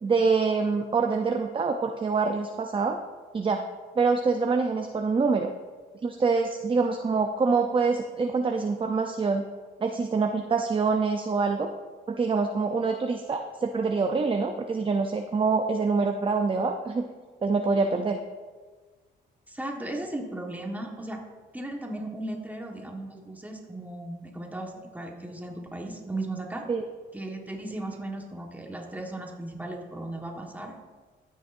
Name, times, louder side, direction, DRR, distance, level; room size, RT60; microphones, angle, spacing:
voice 1, 0.0-3.0 3.3-3.6 4.0-5.5 6.0-9.4 9.8-11.7 12.1-17.1 17.4-18.2 26.7-26.8, right 4 dB, 25° right, 5 dB, 0.6 m, -25 dB
voice 2, 19.5-21.3 21.5-26.7 27.1-30.8, right 1 dB, 10° right, 1 dB, 1.5 m, -36 dB
15.5 x 6.4 x 2.6 m, 1.4 s
cardioid pair, 90°, 20 cm